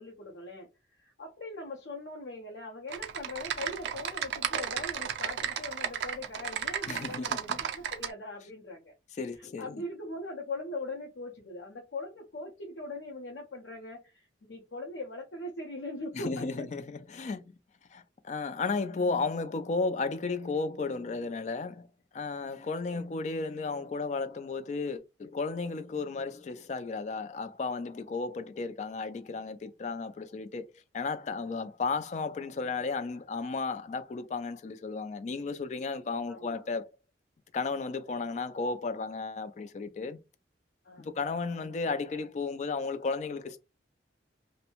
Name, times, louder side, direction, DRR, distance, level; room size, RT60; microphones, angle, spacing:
voice 1, 0.0-8.9 9.4-16.7 22.9-23.0 36.3-36.7 40.8-41.1, left 2 dB, 80° left, 0.6 m, -41 dB
Typing, 2.9-8.1, right 8 dB, 75° right, 0.4 m, -34 dB
voice 2, 6.9-7.6 9.2-9.7 16.1-17.5 17.9-21.9 22.1-30.6 30.9-36.9 37.5-40.2 41.0-43.6, left 4 dB, 40° left, 0.3 m, -34 dB
2.6 x 2.0 x 2.9 m
head